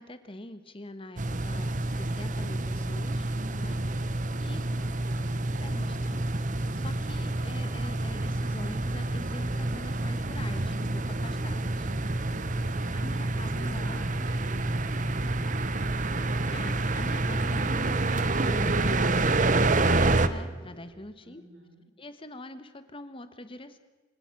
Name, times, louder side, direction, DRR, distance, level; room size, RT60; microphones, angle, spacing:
voice 1, 0.0-4.7 5.6-6.3 6.7-11.9 12.9-14.3 16.1-21.4 22.0-23.8, left 1 dB, 30° left, 11 dB, 1.3 m, -44 dB
sound 1, 1.2-20.3, right 2 dB, 45° right, 1.0 m, -28 dB
sound 2, 2.2-20.9, equal, 55° left, 4.6 m, -51 dB
voice 2, 4.6-6.5 12.5-16.4 21.2-21.9, right 1 dB, 80° right, 3 dB, 5.5 m, -50 dB
28.5 x 17.0 x 6.1 m, 1.3 s
head